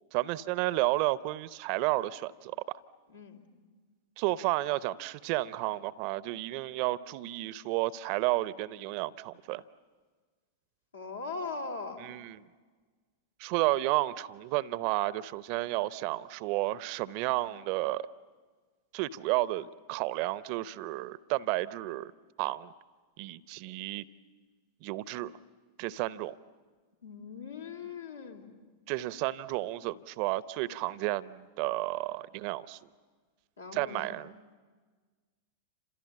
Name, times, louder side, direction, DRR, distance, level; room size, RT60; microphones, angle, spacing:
voice 1, 0.1-2.6 4.2-9.6 12.0-12.4 13.4-18.1 18.9-22.1 22.4-22.7 23.2-24.0 24.8-25.3 25.8-26.3 28.9-32.8 33.7-34.3, right 18 dB, 45° right, 19 dB, 0.7 m, -32 dB
voice 2, 3.1-3.5 10.9-12.1 27.0-28.5 33.6-34.2, left 4 dB, 75° left, 2 dB, 3.1 m, -40 dB
29.5 x 27.0 x 7.3 m, 1.5 s
figure-of-eight pair, 90°, 0 cm